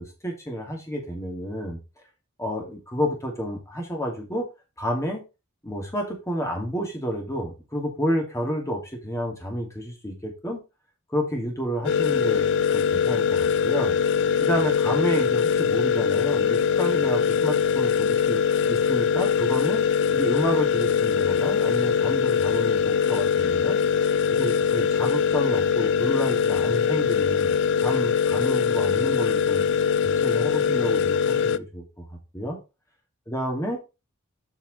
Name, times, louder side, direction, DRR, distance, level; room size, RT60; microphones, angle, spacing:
voice 1, 0.0-1.8 2.4-4.5 4.8-5.2 5.6-10.6 11.1-12.5 12.7-14.0 14.4-18.4 18.7-19.8 20.1-23.8 24.4-29.6 30.0-32.6 33.3-33.8, equal, 15° left, 1 dB, 2.7 m, -30 dB
sound 1, 11.8-31.6, left 7 dB, 55° left, 0.4 m, -22 dB
8.2 x 5.7 x 4.3 m, 0.28 s
head